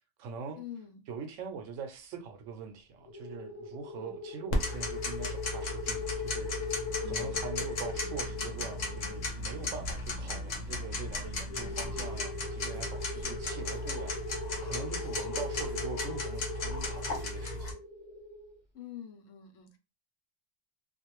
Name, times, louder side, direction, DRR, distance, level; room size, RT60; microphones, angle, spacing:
voice 1, 0.0-0.6 1.1-6.5 7.0-17.8, right 5 dB, 80° right, 1.0 m, -43 dB
voice 2, 0.6-1.0 4.0-4.2 7.0-7.5 13.1-13.9 15.0-15.5 18.7-19.8, left 9 dB, 85° left, 1.0 m, -48 dB
sound 1, 3.0-9.3 11.5-18.6, left 3 dB, 15° left, 0.9 m, -40 dB
Tick-tock, 4.5-17.7, left 2 dB, 50° left, 0.5 m, -36 dB
2.5 x 2.2 x 2.9 m
omnidirectional pair, 1.3 m